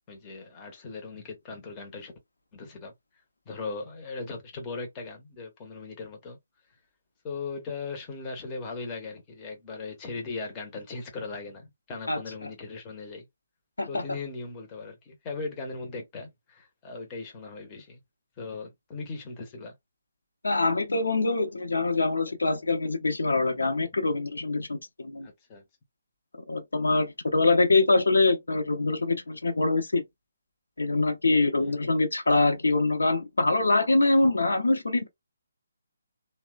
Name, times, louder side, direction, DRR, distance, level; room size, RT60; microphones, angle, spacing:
voice 1, 0.1-2.1 2.5-2.9 3.5-6.4 7.2-13.3 13.9-18.0 18.4-19.7 25.2-25.6 31.6-32.0 34.2-34.3, left 3 dB, 20° left, 0.7 m, -38 dB
voice 2, 20.4-25.3 26.5-30.0 30.8-35.1, left 3 dB, 65° left, 0.7 m, -24 dB
2.9 x 2.0 x 2.2 m
figure-of-eight pair, 140°, 0 cm